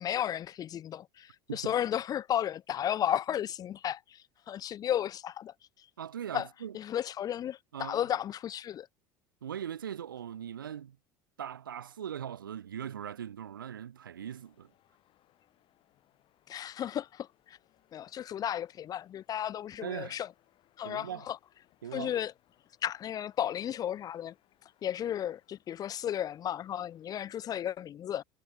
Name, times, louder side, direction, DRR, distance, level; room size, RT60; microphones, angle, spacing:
voice 1, 0.0-5.5 6.3-6.5 6.7-8.9 16.5-17.6 17.9-20.3 20.8-21.4 21.9-22.3 22.8-24.3 24.8-28.2, left 10 dB, 35° left, 0.4 m, -34 dB
voice 2, 6.0-6.8 7.7-8.0 9.4-11.0 11.4-14.7 19.8-20.2 20.8-21.3 21.8-22.1, right 9 dB, 85° right, 1.2 m, -40 dB
sound 1, 14.2-27.5, left 14 dB, 50° left, 6.6 m, -70 dB
hypercardioid pair, 75°, 11 cm